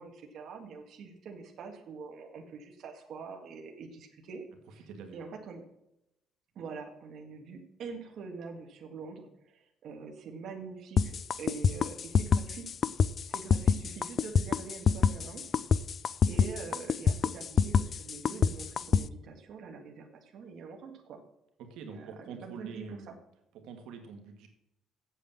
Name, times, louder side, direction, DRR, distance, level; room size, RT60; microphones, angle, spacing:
voice 1, 0.0-4.4 4.7-4.9 5.1-5.6 6.5-12.7 13.3-15.6 16.3-21.2 21.9-22.1 22.4-23.1, right 5 dB, 50° right, 2 dB, 1.7 m, -44 dB
voice 2, 4.9-5.4 21.6-23.1 23.5-24.5, right 5 dB, 75° right, 5 dB, 1.7 m, -45 dB
sound 1, 11.0-19.0, left 6 dB, 35° left, 0.3 m, -25 dB
8.3 x 7.7 x 7.0 m, 0.83 s
cardioid pair, 160°, 0 cm